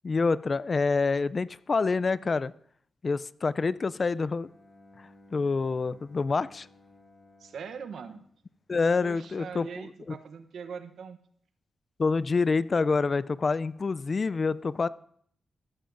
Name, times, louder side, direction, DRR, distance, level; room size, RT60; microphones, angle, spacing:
voice 1, 0.0-2.5 3.0-4.5 5.0-6.7 8.7-9.7 10.1-10.2 12.0-14.9, left 4 dB, 45° left, 18 dB, 0.3 m, -27 dB
Bowed string instrument, 4.3-9.2, left 2 dB, 30° left, 1.5 m, -58 dB
voice 2, 7.4-8.2 9.0-11.2, right 6 dB, 80° right, 10 dB, 0.8 m, -41 dB
14.5 x 11.5 x 2.6 m, 0.63 s
cardioid pair, 70°, 0 cm